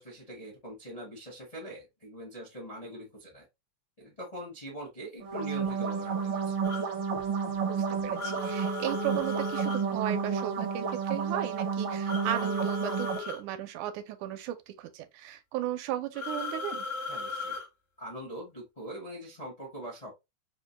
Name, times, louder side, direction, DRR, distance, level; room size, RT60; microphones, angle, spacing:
voice 1, 0.0-3.4 4.0-6.6 17.1-17.6 18.0-20.2, right 1 dB, 80° left, 0.3 m, -43 dB
sound 1, 5.2-13.2, right 6 dB, 70° right, 1.2 m, -31 dB
sound 2, 6.6-6.8 8.2-9.8 12.0-13.4 16.1-17.7, left 4 dB, 60° left, 0.8 m, -37 dB
voice 2, 7.7-16.9, right 12 dB, 85° right, 2.1 m, -35 dB
4.8 x 2.2 x 2.9 m
omnidirectional pair, 3.4 m